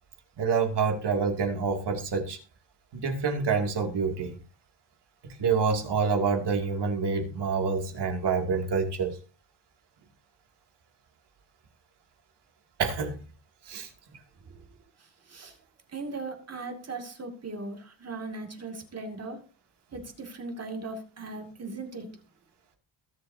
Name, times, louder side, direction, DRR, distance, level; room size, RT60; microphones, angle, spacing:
voice 1, 0.4-2.4 2.9-4.4 5.2-9.2 12.8-13.2 13.7-13.9, right 5 dB, 60° right, 2.7 m, -27 dB
voice 2, 15.9-19.4 19.9-22.1, right 3 dB, 30° right, 2.5 m, -38 dB
22.0 x 7.8 x 2.8 m
wide cardioid pair, 165°, 46 cm